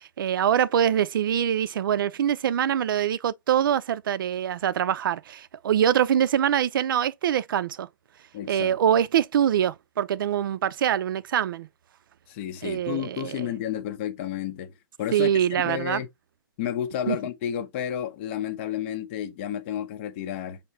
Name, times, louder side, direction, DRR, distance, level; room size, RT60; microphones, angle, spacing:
voice 1, 0.0-7.9 8.5-11.7 12.6-13.5 15.1-16.0 17.1-17.2, right 9 dB, 65° right, 0.5 m, -24 dB
voice 2, 8.3-8.8 12.3-14.7 15.0-16.1 16.6-20.6, left 10 dB, 30° left, 0.6 m, -31 dB
5.8 x 2.8 x 3.1 m
hypercardioid pair, 165°, 12 cm